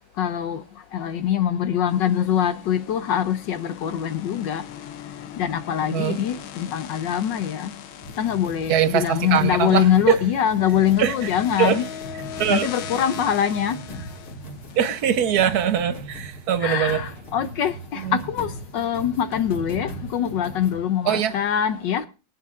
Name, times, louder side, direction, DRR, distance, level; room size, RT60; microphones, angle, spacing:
voice 1, 0.2-0.6 0.9-4.6 5.4-7.7 8.2-11.8 12.5-13.8 16.6-22.1, left 9 dB, 70° left, 1.3 m, -23 dB
sound 1, 1.9-16.1, left 9 dB, 85° left, 1.7 m, -40 dB
voice 2, 5.9-6.2 8.7-10.2 11.0-11.3 11.6-11.8 12.4-12.7 14.8-17.0 18.0-18.2 21.1-21.4, right 9 dB, 60° right, 1.2 m, -22 dB
sound 2, 8.0-20.8, right 1 dB, 45° left, 3.0 m, -39 dB
22.5 x 9.6 x 2.5 m
omnidirectional pair, 2.2 m